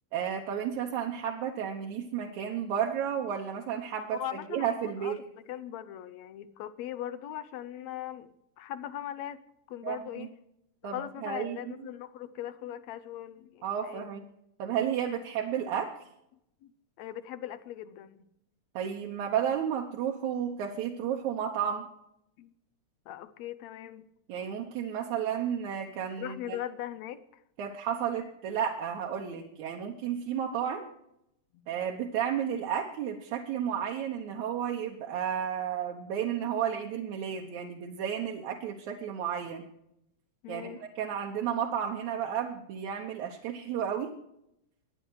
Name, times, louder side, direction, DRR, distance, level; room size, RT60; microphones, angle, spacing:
voice 1, 0.1-4.2 4.5-5.2 9.8-10.3 10.8-11.6 13.6-14.2 14.6-15.9 18.8-21.9 24.3-26.6 27.6-30.9 31.7-39.7 40.5-40.7 41.0-44.1, right 8 dB, 80° right, 1 dB, 2.5 m, -32 dB
voice 2, 4.1-9.4 9.7-10.3 10.8-14.0 16.6-16.7 17.0-18.2 22.4-22.5 23.1-24.0 26.2-27.4 31.5-31.7 34.4-34.5 40.4-40.8, left 11 dB, 75° left, 13 dB, 2.0 m, -40 dB
23.0 x 10.0 x 4.8 m, 0.81 s
omnidirectional pair, 3.3 m